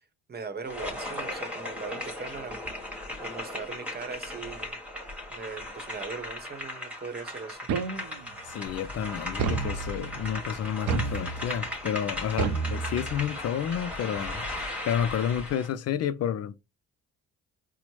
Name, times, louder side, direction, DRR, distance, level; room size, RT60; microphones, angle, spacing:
voice 1, 0.3-2.6 3.2-4.8 5.3-7.6, right 4 dB, 30° right, 0.8 m, -39 dB
sound 1, 0.6-15.7, left 1 dB, 5° right, 1.2 m, -37 dB
sound 2, 7.7-8.4 9.4-10.2 10.9-11.7 12.4-13.4, right 5 dB, 85° right, 0.6 m, -30 dB
voice 2, 8.4-14.5 14.8-16.6, left 9 dB, 55° left, 0.4 m, -30 dB
sound 3, 8.7-14.7, left 3 dB, 30° left, 1.1 m, -45 dB
4.4 x 2.0 x 3.0 m
cardioid pair, 90°, 30 cm